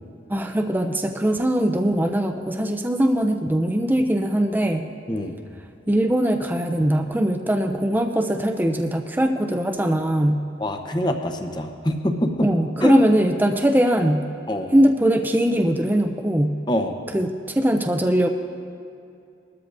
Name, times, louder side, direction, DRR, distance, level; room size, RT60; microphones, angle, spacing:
voice 1, 0.3-4.9 5.9-10.4 12.4-14.3 14.7-16.6 17.1-18.3, right 1 dB, 10° right, 3 dB, 0.4 m, -21 dB
voice 2, 10.6-12.5 12.8-13.0 14.5-14.7 16.7-16.9, left 1 dB, 20° left, 5 dB, 0.7 m, -25 dB
20.5 x 13.0 x 2.6 m, 2.6 s
head